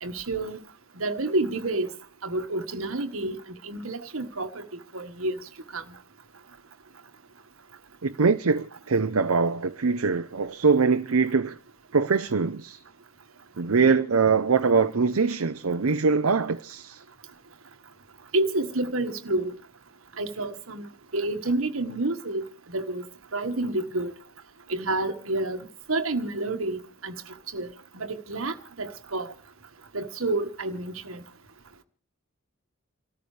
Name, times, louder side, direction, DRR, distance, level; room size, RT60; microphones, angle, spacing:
voice 1, 0.0-0.6 0.9-1.9 2.2-3.4 3.6-4.7 4.9-5.4 5.7-5.8 18.3-19.5 20.2-20.9 21.1-23.0 23.3-24.1 24.7-27.1 27.5-29.3 29.9-31.2, right 2 dB, 70° right, 1.6 m, -29 dB
voice 2, 8.0-11.6 11.9-12.8 13.6-17.0, right 4 dB, 90° right, 0.7 m, -23 dB
29.0 x 13.5 x 3.3 m
head